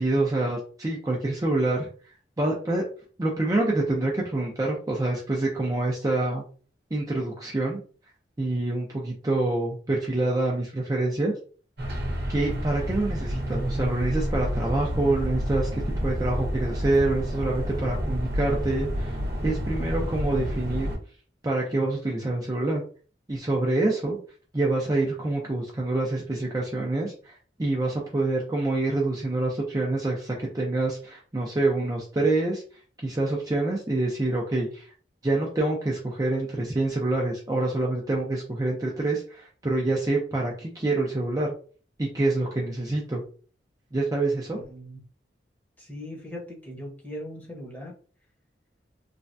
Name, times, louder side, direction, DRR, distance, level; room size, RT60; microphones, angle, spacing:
voice 1, 0.0-1.9 2.4-2.9 3.2-6.4 6.9-7.8 8.4-11.3 12.3-15.7 16.0-20.9 21.4-22.8 23.3-24.2 24.5-32.6 33.0-34.9 35.2-41.5 42.0-43.2 43.9-44.6, right 2 dB, 20° right, -2 dB, 0.5 m, -26 dB
sound 1, 11.8-21.0, equal, 60° right, 0.8 m, -29 dB
voice 2, 44.5-45.0 45.8-47.9, equal, 10° left, -3 dB, 0.8 m, -39 dB
3.3 x 2.2 x 2.6 m, 0.40 s
head